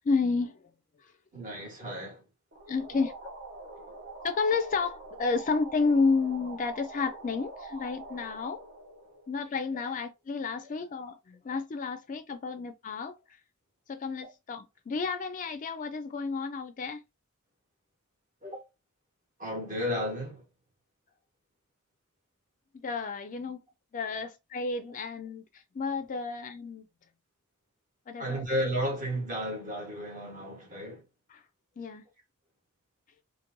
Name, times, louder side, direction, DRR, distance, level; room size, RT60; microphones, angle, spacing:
voice 1, 0.0-0.6 2.7-3.1 4.2-8.6 9.3-13.2 13.9-17.0 22.8-23.6 23.9-26.8 28.1-28.4 31.3-31.4 31.8-32.0, left 4 dB, 35° left, 0.4 m, -31 dB
voice 2, 1.3-2.2 18.4-18.6 19.4-20.4 28.2-31.0, equal, 35° right, 1.3 m, -33 dB
sound 1, 2.5-9.9, right 2 dB, 55° right, 0.9 m, -45 dB
3.0 x 2.5 x 2.6 m
head